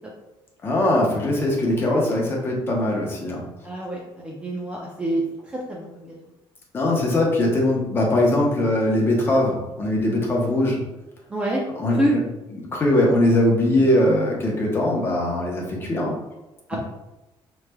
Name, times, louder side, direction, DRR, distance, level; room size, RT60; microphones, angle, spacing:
voice 1, 0.6-3.4 6.7-10.8 11.7-12.2 12.5-16.2, left 1 dB, 25° left, -2 dB, 0.8 m, -21 dB
voice 2, 3.6-5.2 5.7-6.1 11.3-11.6 12.0-12.1 13.7-13.8 16.7-16.8, right 1 dB, 10° right, -3 dB, 0.4 m, -26 dB
4.8 x 3.1 x 2.2 m, 0.97 s
cardioid pair, 170°, 10 cm